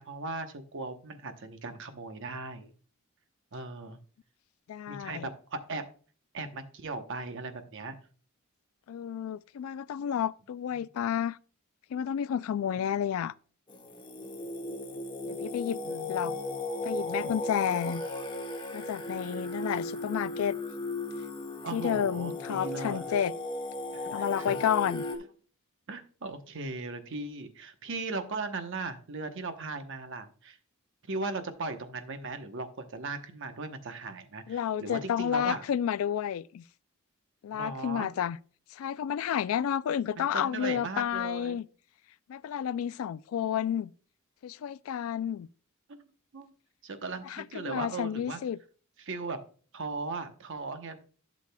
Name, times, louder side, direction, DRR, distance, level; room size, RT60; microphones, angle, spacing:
voice 1, 0.0-2.7 3.5-4.0 4.9-5.9 6.3-8.0 10.8-10.9 15.8-16.6 21.6-23.1 23.9-24.6 25.9-30.6 31.1-35.6 37.5-38.1 40.2-41.6 45.9-46.1 46.3-46.5 46.8-48.4 49.0-49.4 49.7-51.0, right 3 dB, 60° right, 0.9 m, -38 dB
voice 2, 4.7-5.3 8.9-11.4 11.9-13.3 15.3-15.8 16.1-16.3 16.8-18.0 18.7-20.6 21.7-23.3 24.1-25.0 34.5-36.6 37.4-38.4 38.7-41.7 42.3-43.9 44.4-45.5 47.3-48.6, left 9 dB, 70° left, 0.3 m, -31 dB
Singing, 13.7-25.2, left 2 dB, 25° left, 0.9 m, -36 dB
11.5 x 6.3 x 2.2 m
head